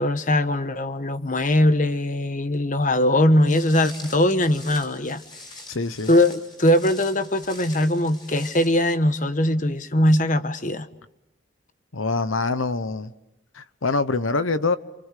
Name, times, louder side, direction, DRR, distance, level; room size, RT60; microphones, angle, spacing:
voice 1, 0.0-5.2 6.1-10.9, left 1 dB, 40° left, 1.2 m, -21 dB
Walk footsteps, 3.4-8.9, left 2 dB, 20° left, 5.9 m, -44 dB
voice 2, 5.7-6.1 11.9-13.1 13.5-14.8, left 3 dB, 85° left, 1.0 m, -24 dB
29.0 x 27.0 x 6.7 m
head